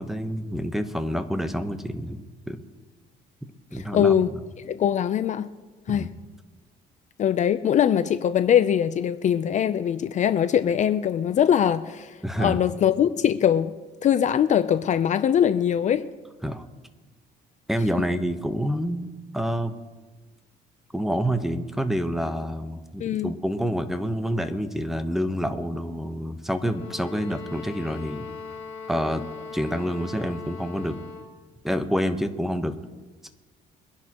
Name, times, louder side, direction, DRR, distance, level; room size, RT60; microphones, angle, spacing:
voice 1, 0.0-2.6 3.7-4.3 5.9-6.1 12.2-12.6 16.4-16.7 17.7-19.1 19.3-19.7 20.9-28.3 28.9-29.2 29.5-31.0 31.6-32.7 33.2-33.3, equal, ahead, 1.0 m, -28 dB
voice 2, 3.7-4.3 4.7-5.5 5.9-6.1 7.2-13.7 14.0-16.1 23.0-23.3, left 9 dB, 45° left, 0.5 m, -22 dB
sound 1, 26.6-31.3, left 5 dB, 80° left, 2.4 m, -39 dB
23.5 x 10.5 x 3.0 m
cardioid pair, 110°, 17 cm